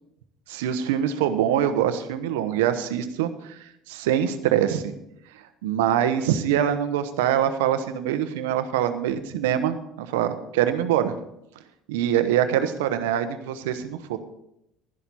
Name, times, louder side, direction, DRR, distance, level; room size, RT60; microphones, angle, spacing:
voice 1, 0.5-3.6 3.9-4.9 5.6-11.2 11.9-14.2, right 10 dB, 80° right, 10 dB, 1.0 m, -24 dB
12.5 x 11.0 x 4.2 m, 0.80 s
hypercardioid pair, 75°, 0 cm